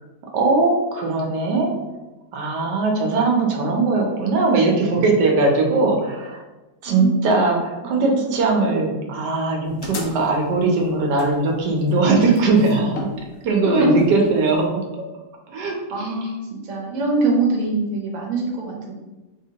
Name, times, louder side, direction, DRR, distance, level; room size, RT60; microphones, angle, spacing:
voice 1, 0.3-1.7 2.3-6.4 6.8-13.1 13.4-14.8 15.5-16.1, right 3 dB, 90° right, 1 dB, 1.3 m, -20 dB
voice 2, 6.9-7.3 7.8-7.9 13.6-13.9 15.9-18.9, right 2 dB, 60° right, -1 dB, 1.0 m, -23 dB
sound 1, 9.7-14.7, left 3 dB, 90° left, 0.5 m, -37 dB
3.6 x 2.8 x 2.8 m, 1.1 s
omnidirectional pair, 1.8 m